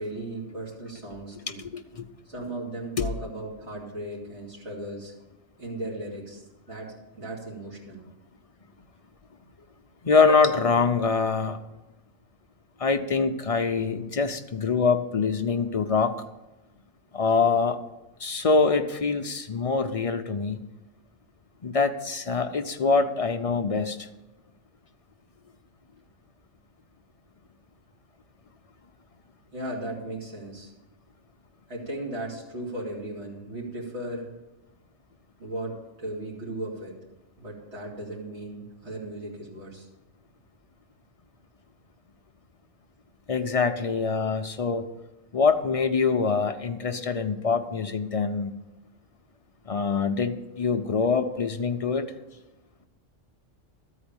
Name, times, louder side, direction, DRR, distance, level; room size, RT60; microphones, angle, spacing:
voice 1, 0.0-1.6 2.2-5.1 5.6-8.0 9.6-9.7 29.5-30.7 31.7-34.3 35.4-37.0 37.4-39.9, right 1 dB, 60° right, -5 dB, 3.1 m, -36 dB
voice 2, 1.6-2.1 3.0-3.1 10.0-11.6 12.8-16.2 17.1-17.8 18.2-20.6 21.6-24.1 43.3-44.9 45.3-48.5 49.7-52.1, left 4 dB, 45° left, 6 dB, 0.4 m, -24 dB
13.0 x 4.8 x 8.7 m, 1.0 s
omnidirectional pair, 1.3 m